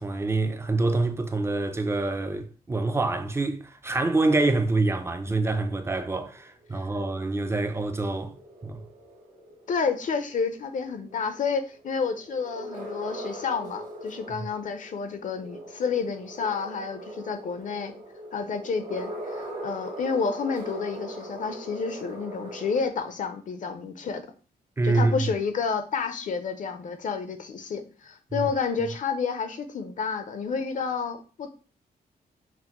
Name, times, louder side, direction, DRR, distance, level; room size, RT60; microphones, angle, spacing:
voice 1, 0.0-8.3 8.6-8.8 24.8-25.3 28.3-28.5, right 2 dB, 15° right, 0.4 m, -26 dB
sound 1, 5.7-22.8, right 1 dB, 55° right, 1.1 m, -41 dB
voice 2, 9.7-17.9 18.3-24.2 24.8-31.5, left 5 dB, 55° left, 0.5 m, -30 dB
5.8 x 2.0 x 2.9 m
wide cardioid pair, 140°, 16 cm